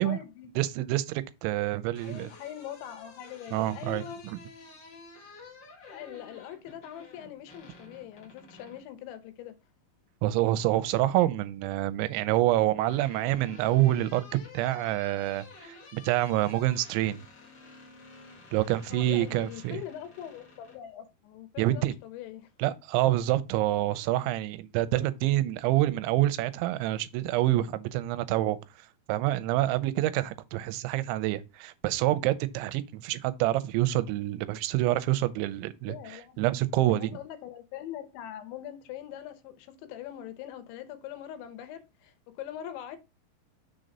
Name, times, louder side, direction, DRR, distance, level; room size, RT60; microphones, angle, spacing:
voice 1, 0.0-0.5 2.0-4.2 5.9-9.5 18.9-22.5 35.8-36.4 36.8-43.0, left 11 dB, 80° left, 3.2 m, -42 dB
voice 2, 0.6-2.3 3.5-4.4 10.2-14.2 14.5-17.2 18.5-19.8 21.6-21.9 22.6-28.6 29.1-37.2, right 15 dB, 85° right, 3.0 m, -27 dB
sound 1, 1.9-8.9 10.4-11.0 12.3-20.8, left 3 dB, 50° left, 1.9 m, -51 dB
6.5 x 3.8 x 5.2 m
omnidirectional pair, 5.3 m